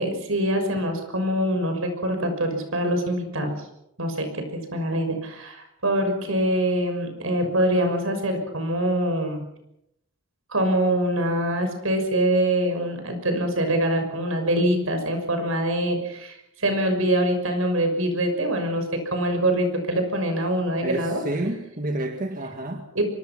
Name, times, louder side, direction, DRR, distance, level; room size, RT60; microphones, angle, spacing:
voice 1, 0.0-3.5 4.0-9.4 10.5-21.2 22.9-23.1, right 1 dB, 75° right, 6.3 m, -24 dB
voice 2, 20.8-22.9, right 1 dB, 40° right, 1.8 m, -29 dB
25.5 x 23.0 x 6.1 m
head